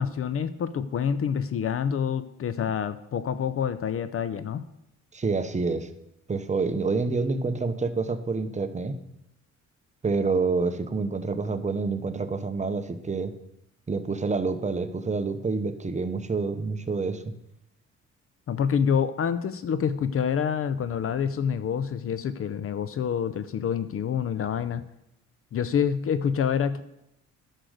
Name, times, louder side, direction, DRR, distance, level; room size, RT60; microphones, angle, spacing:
voice 1, 0.0-4.7 18.5-24.8 25.5-26.8, left 7 dB, 50° left, 13 dB, 0.6 m, -27 dB
voice 2, 5.1-5.9 6.3-8.9 10.0-13.3 13.9-17.3, right 4 dB, 25° right, 9 dB, 0.9 m, -27 dB
9.9 x 6.5 x 6.5 m, 0.84 s
cardioid pair, 90°, 30 cm